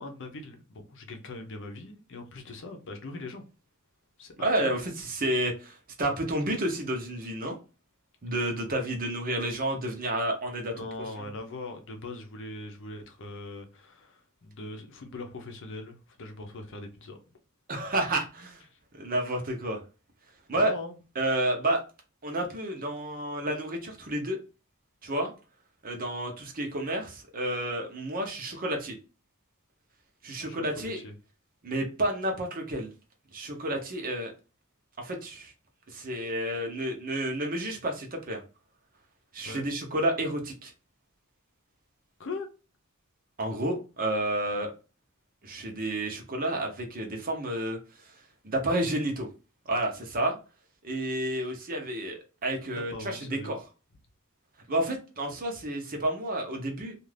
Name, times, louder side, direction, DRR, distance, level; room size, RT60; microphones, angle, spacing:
voice 1, 0.0-3.4 4.2-4.3 4.6-4.7 10.7-17.2 20.5-21.0 30.4-31.1 39.4-39.7 42.2-42.5 52.9-53.5, left 2 dB, 60° left, 0.6 m, -41 dB
voice 2, 4.4-7.6 8.2-10.9 17.7-18.6 18.9-19.8 20.5-20.7 21.2-21.8 22.2-24.4 25.0-25.3 25.8-28.9 30.2-31.0 31.6-32.9 33.3-34.3 35.0-35.5 35.9-38.4 39.3-40.7 43.4-44.7 45.4-47.8 48.4-49.3 49.7-50.4 50.8-53.6 54.7-57.0, right 1 dB, 40° right, 0.8 m, -30 dB
2.5 x 2.4 x 3.2 m
head